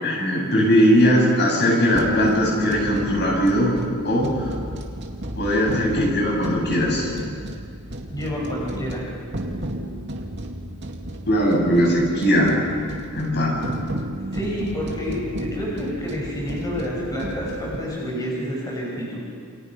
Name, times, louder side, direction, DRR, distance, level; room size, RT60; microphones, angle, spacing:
voice 1, 0.0-3.7 4.0-4.5 5.4-7.1 11.3-12.6 13.1-13.6, equal, 50° left, -2 dB, 7.7 m, -19 dB
sound 1, 1.9-17.8, right 1 dB, 55° right, 2.3 m, -33 dB
voice 2, 8.1-9.0 14.3-19.2, equal, 15° left, -4 dB, 5.7 m, -28 dB
28.5 x 28.0 x 5.8 m, 2.2 s
head